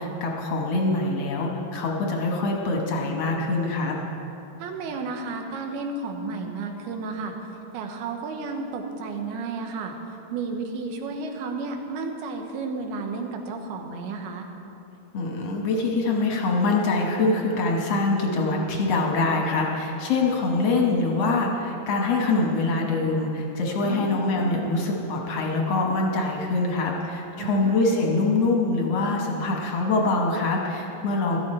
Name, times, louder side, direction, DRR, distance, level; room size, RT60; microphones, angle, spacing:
voice 1, 0.0-4.0 15.1-31.4, left 3 dB, 65° left, 0 dB, 1.7 m, -24 dB
voice 2, 4.6-7.3 7.7-9.9 10.3-14.5 23.8-24.2 27.4-27.8, right 4 dB, 90° right, 4 dB, 3.0 m, -32 dB
15.0 x 13.0 x 4.4 m, 3.0 s
omnidirectional pair, 4.4 m